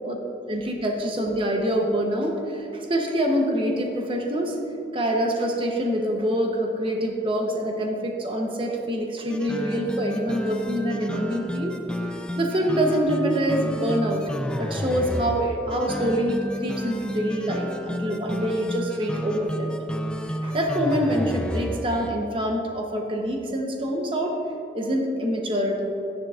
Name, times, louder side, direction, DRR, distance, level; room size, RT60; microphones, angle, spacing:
voice 1, 0.5-4.6 4.9-11.7 12.4-14.2 14.6-19.8 20.4-24.4 24.7-25.9, equal, 30° right, 1 dB, 0.9 m, -25 dB
sound 1, 9.3-22.1, equal, 5° left, 0.3 m, -31 dB
13.0 x 10.0 x 2.5 m, 2.9 s
head